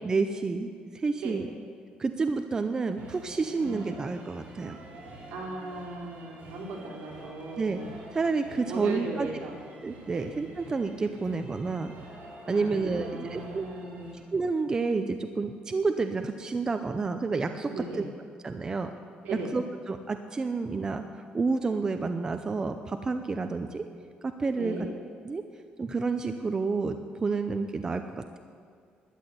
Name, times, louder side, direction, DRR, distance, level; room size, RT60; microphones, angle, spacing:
voice 1, 0.0-1.5 2.0-4.8 7.6-7.8 8.1-9.3 9.8-11.9 12.5-13.7 14.3-18.0 18.4-18.9 19.5-21.0 21.3-23.8 24.2-24.9 25.2-25.4 25.8-28.0, right 4 dB, 20° right, 7 dB, 0.5 m, -29 dB
sound 1, 3.0-14.1, right 2 dB, 55° right, 4.3 m, -48 dB
voice 2, 3.5-3.8 5.3-7.9 8.7-9.6 10.1-10.3 12.4-14.2 17.7-18.1 19.2-19.5 24.5-24.9, right 3 dB, 75° right, -2 dB, 3.4 m, -37 dB
12.5 x 9.8 x 8.0 m, 2.2 s
cardioid pair, 145°, 3 cm